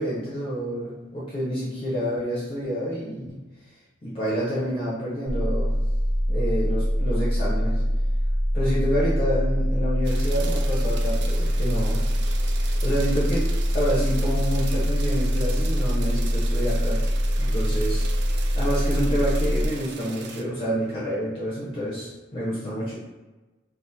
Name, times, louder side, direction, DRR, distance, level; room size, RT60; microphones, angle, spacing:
voice 1, 0.0-3.4 4.0-5.7 6.3-7.8 8.5-12.0 12.4-12.5 12.8-17.1 17.4-18.1 18.6-22.9, equal, 30° left, -7 dB, 0.6 m, -28 dB
sound 1, 5.3-19.7, equal, 25° right, 0.8 m, -24 dB
sound 2, 10.0-20.4, right 6 dB, 65° right, 0.3 m, -40 dB
2.7 x 2.1 x 3.3 m, 1.2 s
head